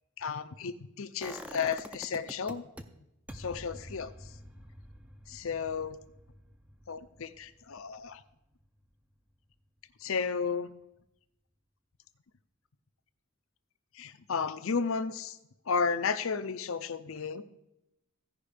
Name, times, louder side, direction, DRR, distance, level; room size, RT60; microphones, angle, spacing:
voice 1, 0.2-2.6 3.3-4.1 5.3-6.0 6.9-8.2 10.0-10.7 14.0-15.4 15.7-17.4, left 5 dB, 65° left, 12 dB, 0.6 m, -33 dB
sound 1, 1.2-2.8 3.3-9.1 9.4-9.5, equal, 5° right, 0.5 m, -48 dB
15.5 x 5.3 x 5.0 m, 0.87 s
head